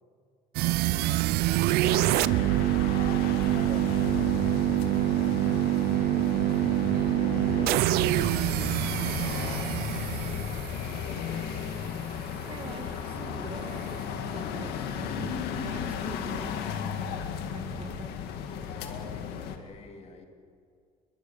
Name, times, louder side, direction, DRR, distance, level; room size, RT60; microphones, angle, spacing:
sound 1, 0.5-11.5, right 16 dB, 85° right, 0.6 m, -26 dB
voice 1, 0.8-3.5 4.7-5.2 6.2-8.6 9.0-10.5 10.9-11.7 18.3-20.3, left 4 dB, 40° left, 5 dB, 2.6 m, -48 dB
sound 2, 1.8-19.6, left 7 dB, 90° left, 2.0 m, -34 dB
voice 2, 3.4-3.9 12.5-16.9 17.5-18.1, right 5 dB, 35° right, 6 dB, 1.9 m, -44 dB
26.5 x 23.0 x 7.2 m, 2.3 s
cardioid pair, 145°, 16 cm